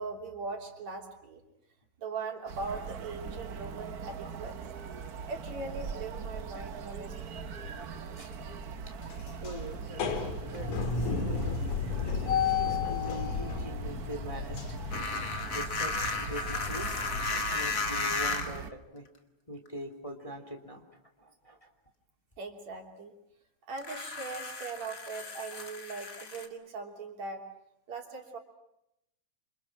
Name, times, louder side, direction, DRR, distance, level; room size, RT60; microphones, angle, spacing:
voice 1, 0.0-1.4 2.0-4.6 5.3-7.4 17.5-17.6 22.4-23.1 23.7-27.4 27.9-28.4, right 4 dB, 65° right, 3 dB, 4.4 m, -40 dB
sound 1, 2.5-18.7, right 6 dB, 80° right, 0.8 m, -41 dB
sound 2, 7.4-7.9 8.3-8.5 8.8-17.3, left 6 dB, 75° left, 3.7 m, -33 dB
voice 2, 9.4-11.5 12.2-14.8 15.5-19.0 19.5-20.8 21.2-21.7, right 1 dB, 10° left, 4 dB, 2.8 m, -43 dB
sound 3, 14.9-18.6 19.7-19.8 23.8-26.5, left 4 dB, 30° left, 2.2 m, -34 dB
28.5 x 27.5 x 6.1 m, 0.83 s
omnidirectional pair, 3.4 m